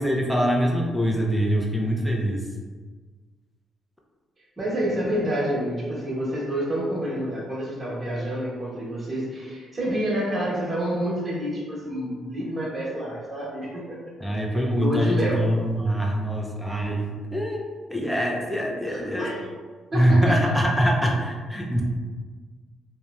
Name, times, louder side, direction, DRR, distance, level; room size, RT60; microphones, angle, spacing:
voice 1, 0.0-2.5 14.2-17.6 17.9-19.3 19.9-21.8, equal, ahead, -1 dB, 0.4 m, -23 dB
voice 2, 4.6-14.1 14.5-15.5 18.9-19.5 19.9-20.4, equal, 20° right, -9 dB, 1.0 m, -28 dB
2.8 x 2.1 x 2.3 m, 1.4 s
cardioid pair, 90°, 0 cm